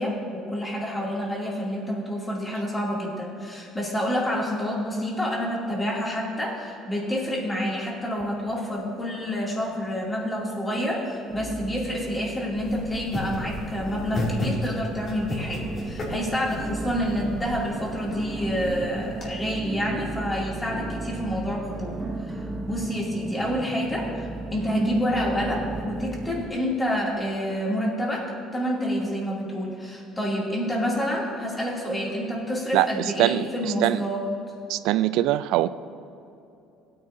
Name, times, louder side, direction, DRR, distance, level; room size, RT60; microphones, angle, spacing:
voice 1, 0.0-21.9 22.3-22.4 22.6-28.3 28.5-34.2, equal, 15° left, -3 dB, 2.7 m, -28 dB
sound 1, 8.1-9.1 9.3-10.0 10.5-10.6 11.3-26.5, right 2 dB, 20° right, 0.9 m, -35 dB
sound 2, 12.6-19.2, left 1 dB, 40° left, 2.7 m, -34 dB
voice 2, 33.2-34.0 34.7-35.7, right 14 dB, 75° right, 15 dB, 0.3 m, -22 dB
17.0 x 9.5 x 2.7 m, 2.8 s
cardioid pair, 110°, 0 cm